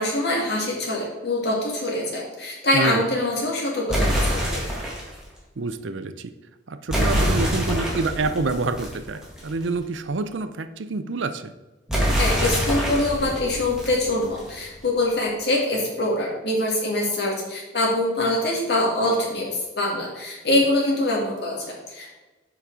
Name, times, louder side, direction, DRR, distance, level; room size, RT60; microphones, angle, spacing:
voice 1, 0.0-4.6 12.2-22.1, left 1 dB, 60° left, -2 dB, 2.3 m, -24 dB
Explosion Debris Short Stereo, 3.9-5.1 6.9-9.6 11.9-14.6, equal, 5° right, 2.0 m, -25 dB
voice 2, 5.6-6.3 6.7-11.5, right 3 dB, 85° right, 10 dB, 0.6 m, -27 dB
7.3 x 5.2 x 4.7 m, 1.2 s
head